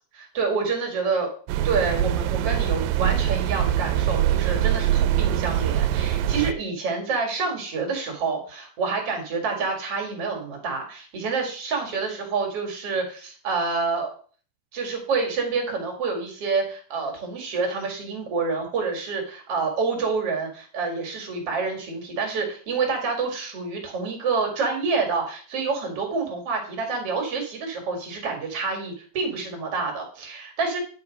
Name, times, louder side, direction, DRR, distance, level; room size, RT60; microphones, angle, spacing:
voice 1, 0.1-1.3 1.6-14.1 14.7-30.8, right 4 dB, 45° right, 2 dB, 2.8 m, -28 dB
sound 1, 1.5-6.5, right 11 dB, 85° right, 2.2 m, -23 dB
10.0 x 5.0 x 5.2 m, 0.43 s
omnidirectional pair, 3.9 m